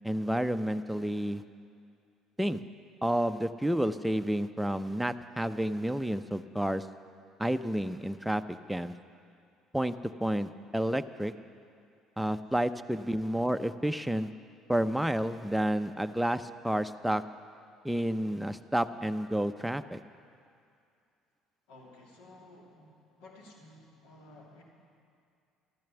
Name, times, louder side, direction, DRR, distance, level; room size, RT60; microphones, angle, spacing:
voice 1, 0.0-1.4 2.4-2.6 3.0-6.9 7.4-8.9 9.7-9.9 10.2-11.3 12.2-14.3 14.7-17.2 17.8-20.0, right 1 dB, 5° right, 9 dB, 0.7 m, -30 dB
voice 2, 21.7-24.6, left 2 dB, 65° left, -2 dB, 2.7 m, -54 dB
14.0 x 13.5 x 7.0 m, 2.4 s
hypercardioid pair, 55°, 0 cm